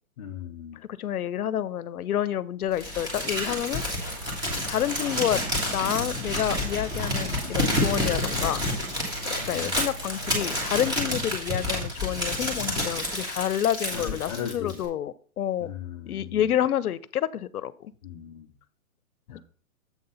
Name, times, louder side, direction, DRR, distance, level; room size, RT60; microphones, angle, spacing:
voice 1, 0.2-0.8 9.4-9.8 13.9-14.9 15.6-16.6 18.0-18.5 19.3-19.4, left 8 dB, 25° left, 0 dB, 0.6 m, -38 dB
voice 2, 0.9-3.8 4.7-5.4 5.7-8.7 9.5-15.7 16.1-17.9, left 10 dB, 85° left, 17 dB, 0.8 m, -28 dB
Crumpling crinkling, 2.8-14.9, left 1 dB, 10° right, 1.5 m, -29 dB
sound 1, 4.0-11.1, right 1 dB, 80° right, 4.1 m, -41 dB
7.7 x 3.9 x 5.6 m, 0.43 s
hypercardioid pair, 165°, 43 cm